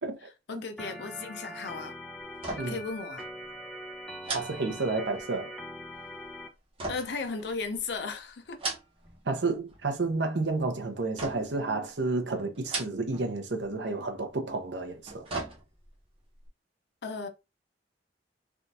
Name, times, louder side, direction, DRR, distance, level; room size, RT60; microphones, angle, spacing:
voice 1, 0.5-1.9 2.6-3.2 6.9-8.6 17.0-17.3, left 4 dB, 70° left, 0.6 m, -35 dB
Organ, 0.8-6.5, equal, 5° left, 0.6 m, -42 dB
sound 1, 2.3-2.9 3.2-3.3 4.2-5.3 6.8-7.9 8.4-9.2 9.5-10.1 11.2-11.7 12.5-13.3 13.6-13.7 14.8-16.0 16.4-16.5, right 3 dB, 30° right, 1.0 m, -37 dB
voice 2, 4.3-5.5 9.2-15.3, right 3 dB, 80° right, 0.8 m, -31 dB
3.5 x 2.5 x 2.7 m
head